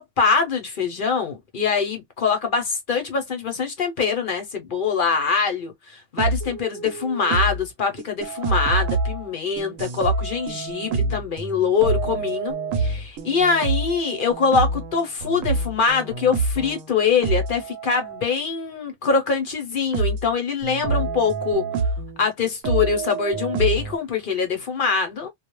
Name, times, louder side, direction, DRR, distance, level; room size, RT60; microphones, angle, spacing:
voice 1, 0.0-21.7 22.2-25.3, left 5 dB, 50° left, 0.7 m, -23 dB
sound 1, 6.2-7.7 8.0-16.9 17.2-18.3 19.3-19.4 19.9-20.3 20.6-22.3 22.6-24.0, right 3 dB, 80° right, 1.0 m, -27 dB
2.3 x 2.1 x 2.9 m
omnidirectional pair, 1.4 m